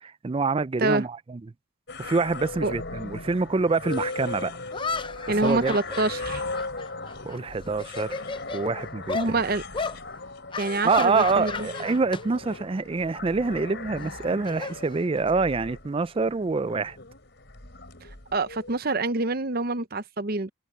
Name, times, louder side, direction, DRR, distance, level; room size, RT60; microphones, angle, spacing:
voice 1, 0.0-1.4 2.0-4.5 5.4-5.8 7.2-8.1 8.5-9.4 10.8-17.0, right 4 dB, 25° right, 0.4 m, -26 dB
sound 1, 1.9-18.8, left 3 dB, 55° left, 5.0 m, -38 dB
sound 2, 3.9-4.0 4.7-7.4 7.7-8.6 9.1-9.3 9.7-10.0 10.5-12.2 12.5-12.8 14.0-15.4, left 4 dB, 25° left, 0.5 m, -34 dB
voice 2, 5.3-6.4 9.1-9.6 10.6-11.7 18.3-20.5, right 2 dB, 45° right, 0.8 m, -26 dB
head